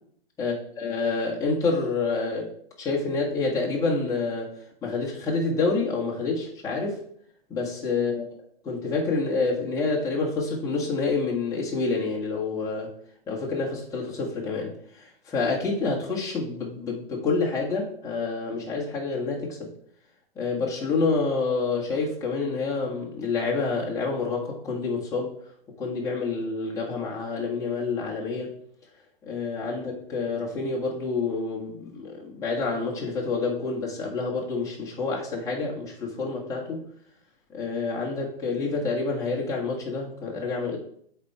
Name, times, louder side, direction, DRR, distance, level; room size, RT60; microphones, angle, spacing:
voice 1, 0.8-4.5 4.8-7.0 7.5-8.2 8.6-12.9 13.3-19.7 20.4-25.3 25.8-28.6 29.2-36.8 37.5-40.8, left 4 dB, 10° left, -5 dB, 1.8 m, -28 dB
8.1 x 4.5 x 4.7 m, 0.64 s
hypercardioid pair, 140°, 30 cm